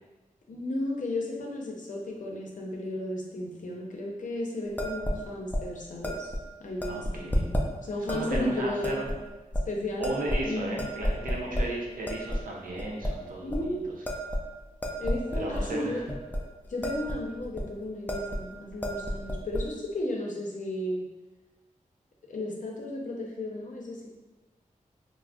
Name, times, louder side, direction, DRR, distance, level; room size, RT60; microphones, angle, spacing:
voice 1, 0.5-6.3 6.6-7.5 7.8-9.1 9.7-10.1 10.4-10.9 13.4-13.9 15.0-16.0 16.7-21.1 22.3-24.1, left 1 dB, 65° left, -1 dB, 0.6 m, -34 dB
sound 1, 4.8-5.2 5.5-5.6 6.0-6.4 6.8-7.7 8.1-8.4 8.8-9.2 9.5-9.6 10.0-10.5 10.8-11.7 12.1-12.4 12.8-13.1 13.5-13.7 14.1-15.7 16.1-16.4 16.7-17.2 17.4-17.6 18.1-18.4 18.7-19.6, equal, 10° left, 0.4 m, -30 dB
voice 2, 6.8-7.3 8.1-9.1 10.0-14.0 15.3-16.0, right 1 dB, 85° right, -2 dB, 0.6 m, -34 dB
2.4 x 2.0 x 3.4 m, 1.1 s
wide cardioid pair, 70°, 14 cm